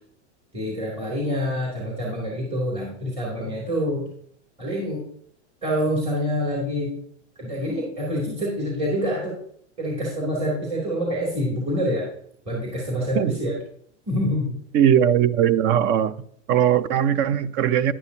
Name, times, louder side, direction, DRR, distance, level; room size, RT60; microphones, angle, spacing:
voice 1, 0.5-4.1 4.6-5.0 5.6-7.0 7.4-9.3 9.8-12.0 12.4-13.5 14.1-14.5, equal, 15° right, -4 dB, 2.9 m, -26 dB
voice 2, 14.7-16.1 16.5-17.9, right 9 dB, 30° right, 17 dB, 0.5 m, -19 dB
11.0 x 9.6 x 2.8 m, 0.64 s
supercardioid pair, 135°, 36 cm